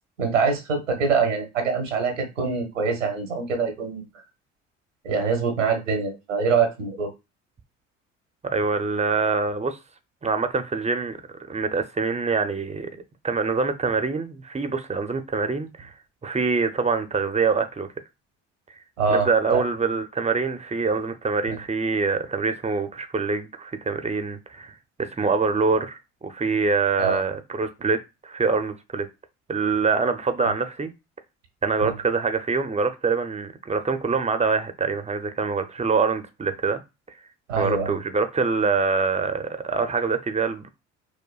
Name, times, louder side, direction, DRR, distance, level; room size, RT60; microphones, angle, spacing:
voice 1, 0.2-4.0 5.0-7.1 19.0-19.6 21.5-21.6 27.0-27.2 31.8-31.9 37.5-37.9, right 5 dB, 90° right, 1.0 m, -24 dB
voice 2, 8.4-9.8 10.2-11.2 11.5-15.9 16.2-17.9 19.1-29.1 29.5-30.9 31.6-36.8 37.6-40.7, right 4 dB, 20° right, 0.6 m, -25 dB
4.7 x 2.2 x 2.3 m
hypercardioid pair, 55°, 36 cm